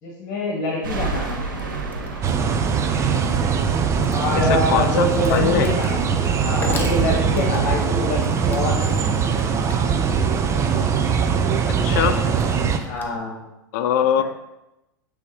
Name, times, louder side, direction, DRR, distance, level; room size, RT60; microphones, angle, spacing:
voice 1, 0.0-1.4 4.1-9.1 12.8-13.5, left 2 dB, 40° left, -2 dB, 2.0 m, -25 dB
sound 1, 0.8-9.4, right 3 dB, 85° right, 1.1 m, -34 dB
Wood, 1.2-13.2, left 3 dB, 20° left, 1.1 m, -39 dB
sound 2, 2.2-12.8, right 6 dB, 25° right, 0.7 m, -21 dB
voice 2, 4.3-5.7 11.7-12.2 13.7-14.2, left 9 dB, 60° left, 10 dB, 0.6 m, -22 dB
8.4 x 3.5 x 4.9 m, 0.93 s
hypercardioid pair, 100°, 11 cm